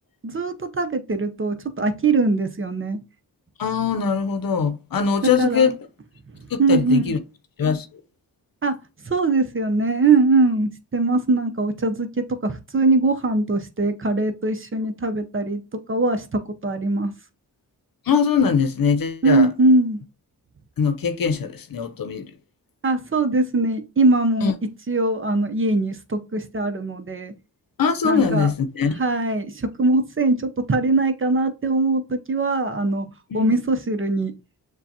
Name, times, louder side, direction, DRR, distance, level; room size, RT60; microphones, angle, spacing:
voice 1, 0.2-3.0 5.4-5.7 6.6-7.1 8.6-8.8 9.0-17.1 19.2-20.0 22.8-27.3 28.0-28.5 29.0-34.3, right 3 dB, 30° right, 0.8 m, -21 dB
voice 2, 3.6-5.9 6.5-7.2 7.6-7.9 18.1-19.5 20.8-22.3 24.4-24.5 27.8-29.0 33.3-33.5, left 6 dB, 55° left, 0.8 m, -22 dB
6.8 x 2.3 x 2.8 m
supercardioid pair, 40°, 40 cm